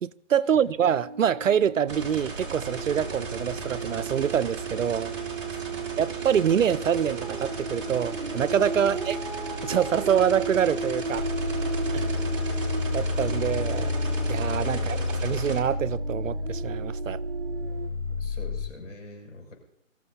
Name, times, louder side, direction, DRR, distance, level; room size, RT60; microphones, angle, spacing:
voice 1, 0.0-5.1 6.0-9.2 9.6-11.2 11.9-12.0 12.9-13.9 14.3-17.2, right 8 dB, 70° right, 0.6 m, -25 dB
sound 1, 0.8-17.9, right 4 dB, 40° right, 1.2 m, -36 dB
sound 2, 1.9-15.6, right 3 dB, 20° right, 2.0 m, -37 dB
sound 3, 11.1-18.7, left 2 dB, 15° left, 5.1 m, -30 dB
voice 2, 18.2-19.5, left 2 dB, 65° left, 6.7 m, -45 dB
24.5 x 14.5 x 2.8 m
hypercardioid pair, 170°, 40 cm